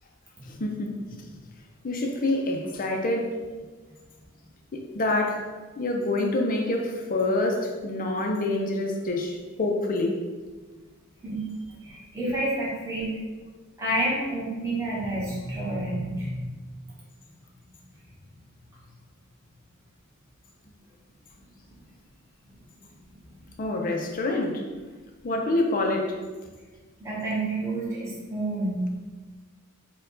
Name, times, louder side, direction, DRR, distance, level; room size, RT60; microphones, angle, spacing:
voice 1, 0.5-1.0 1.8-3.3 4.7-5.5 5.8-10.2 23.6-24.6 25.2-26.2, left 2 dB, 40° left, 2 dB, 0.5 m, -26 dB
voice 2, 11.8-13.1 13.8-16.5 22.4-22.5 27.0-28.9, right 1 dB, 15° right, -8 dB, 1.0 m, -29 dB
4.3 x 2.3 x 3.8 m, 1.3 s
head